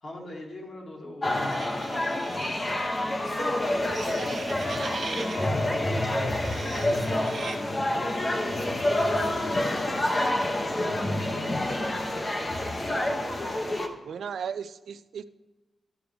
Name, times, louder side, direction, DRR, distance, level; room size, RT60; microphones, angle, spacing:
voice 1, 0.0-8.7 9.2-10.0, left 1 dB, 55° left, -2 dB, 2.6 m, -43 dB
sound 1, 1.2-13.9, left 1 dB, 25° left, 1.0 m, -28 dB
sound 2, 1.3-2.9 3.8-5.5 6.3-7.6, right 4 dB, 55° right, 1.0 m, -40 dB
voice 2, 12.9-13.4 14.0-15.2, right 7 dB, 80° right, 13 dB, 0.4 m, -37 dB
13.5 x 6.1 x 3.4 m, 1.2 s
wide cardioid pair, 130°, 0 cm